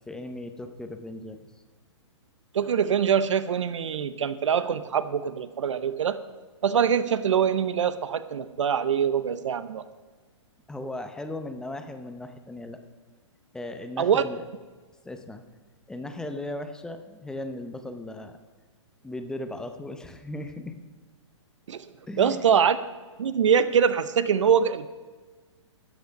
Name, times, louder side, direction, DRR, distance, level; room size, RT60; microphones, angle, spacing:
voice 1, 0.1-1.4 10.7-12.8 13.5-14.4 15.0-15.4 15.9-18.4 19.0-20.8 22.1-22.5, left 1 dB, 5° left, 7 dB, 0.7 m, -37 dB
voice 2, 2.5-6.2 6.6-9.8 14.0-14.2 21.7-21.8 22.2-22.8 23.2-24.9, right 7 dB, 75° right, 13 dB, 0.7 m, -23 dB
13.5 x 8.3 x 5.2 m, 1.4 s
hypercardioid pair, 140°, 16 cm